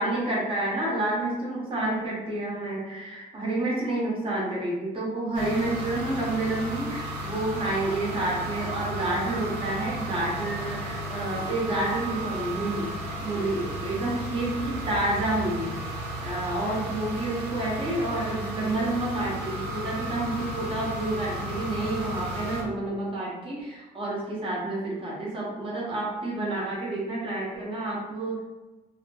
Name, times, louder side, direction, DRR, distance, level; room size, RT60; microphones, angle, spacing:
voice 1, 0.0-12.9 13.2-15.8 16.2-28.4, right 2 dB, 30° right, -5 dB, 0.9 m, -29 dB
sound 1, 5.3-22.6, right 1 dB, 85° right, 0.8 m, -34 dB
2.7 x 2.1 x 2.8 m, 1.2 s
cardioid pair, 110°, 17 cm